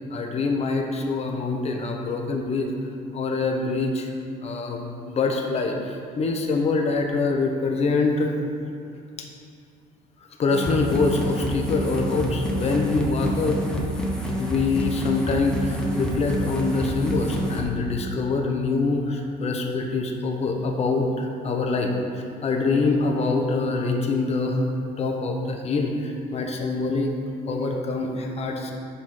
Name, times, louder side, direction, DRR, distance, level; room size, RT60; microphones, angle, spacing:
voice 1, 0.1-2.7 3.1-4.1 4.4-8.3 10.4-13.6 14.4-24.6 25.0-27.1 27.5-28.7, left 3 dB, 40° left, 2 dB, 0.9 m, -25 dB
sound 1, 10.5-17.6, equal, 5° left, 1.1 m, -28 dB
7.8 x 3.7 x 5.9 m, 2.4 s
cardioid pair, 110°, 17 cm